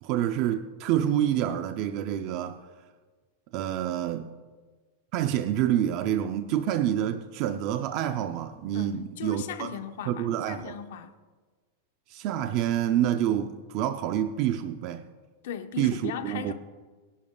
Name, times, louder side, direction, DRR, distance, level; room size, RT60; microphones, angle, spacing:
voice 1, 0.0-2.6 3.5-4.3 5.1-9.7 10.1-10.7 12.1-15.0 15.8-16.5, right 11 dB, 35° right, 0.5 m, -27 dB
voice 2, 8.7-11.1 15.4-16.5, left 9 dB, 60° left, 1.0 m, -38 dB
23.0 x 11.0 x 2.4 m
supercardioid pair, 170°, 0 cm